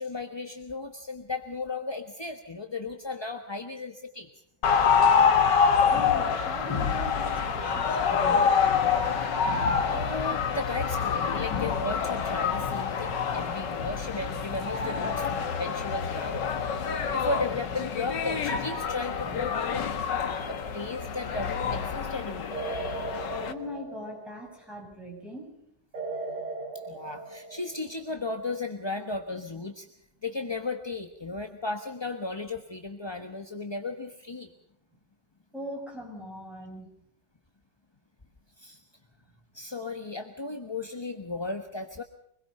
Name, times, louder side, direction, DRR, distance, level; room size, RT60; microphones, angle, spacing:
voice 1, 0.0-4.3 9.4-16.5 17.1-19.9 20.2-22.5 26.9-29.9 30.2-34.5 38.6-38.8 39.5-42.0, left 3 dB, 15° left, 4 dB, 1.0 m, -35 dB
sound 1, 4.6-23.5, left 6 dB, 60° left, 2.0 m, -27 dB
voice 2, 5.9-8.5 23.5-25.6 35.5-36.9, equal, ahead, -1 dB, 7.8 m, -40 dB
sound 2, 20.5-21.1 22.5-24.6 25.9-28.0, right 3 dB, 35° right, 3.7 m, -38 dB
25.0 x 21.0 x 5.5 m, 0.72 s
omnidirectional pair, 2.2 m